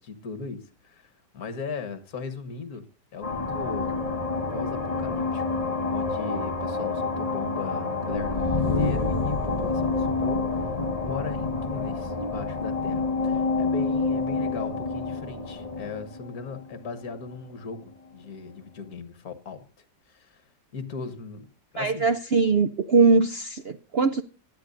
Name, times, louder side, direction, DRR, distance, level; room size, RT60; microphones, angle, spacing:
voice 1, 0.0-2.9 3.1-4.0 4.5-5.6 5.9-10.7 11.0-19.7 20.1-20.4 20.7-22.1, left 5 dB, 60° left, 1.8 m, -38 dB
sound 1, 3.2-17.4, left 3 dB, 25° left, 1.2 m, -28 dB
voice 2, 21.8-24.2, right 4 dB, 75° right, 0.5 m, -21 dB
17.5 x 11.0 x 2.6 m
omnidirectional pair, 1.8 m